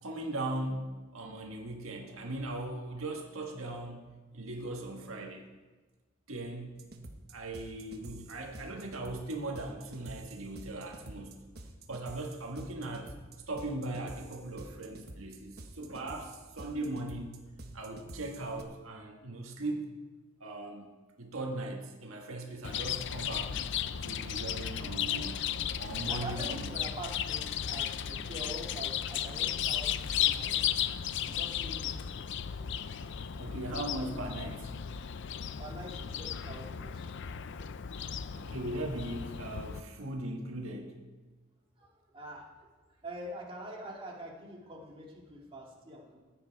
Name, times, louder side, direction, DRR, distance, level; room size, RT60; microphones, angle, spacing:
voice 1, 0.0-5.5 6.3-6.9 7.3-11.4 11.9-13.1 13.5-17.4 17.7-19.9 20.4-20.9 21.2-23.5 24.0-25.4 25.8-26.8 33.4-34.7 38.3-41.0, right 2 dB, 85° right, 1 dB, 1.6 m, -39 dB
sound 1, 6.8-18.6, right 1 dB, 50° right, 1.3 m, -49 dB
Chirp tweet, 22.6-39.8, left 9 dB, 60° left, 0.5 m, -35 dB
voice 2, 26.1-29.9 30.2-30.9 31.2-32.3 32.7-33.3 35.2-37.0 38.0-38.2 41.8-42.7 43.0-46.2, right 1 dB, 25° right, -3 dB, 2.4 m, -45 dB
15.5 x 9.5 x 4.6 m, 1.3 s
head